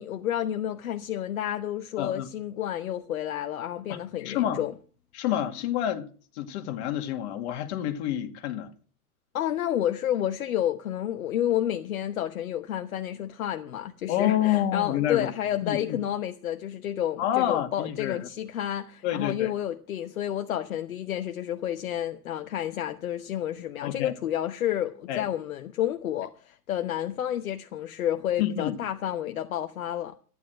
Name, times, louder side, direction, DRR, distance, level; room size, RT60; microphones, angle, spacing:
voice 1, 0.0-4.7 9.3-30.2, left 11 dB, 65° left, 1.1 m, -30 dB
voice 2, 2.0-2.3 3.9-4.6 5.1-6.1 6.3-8.7 14.1-15.3 15.6-16.0 17.2-18.3 19.0-19.5 23.8-24.1 25.1-25.3 28.4-28.8, left 11 dB, 45° left, 2.1 m, -28 dB
14.0 x 10.0 x 6.1 m
hypercardioid pair, 120°, 45 cm